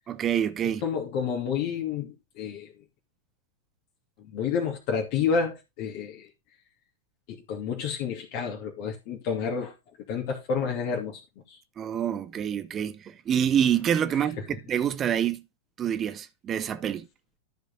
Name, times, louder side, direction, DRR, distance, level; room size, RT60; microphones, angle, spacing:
voice 1, 0.1-0.8 11.8-15.4 15.8-17.1, right 9 dB, 25° right, 1.0 m, -27 dB
voice 2, 0.8-2.7 4.2-6.3 7.3-9.7 10.1-11.2 11.5-11.6, left 6 dB, 45° left, 2.6 m, -29 dB
13.5 x 5.2 x 4.1 m
figure-of-eight pair, 90°, 0 cm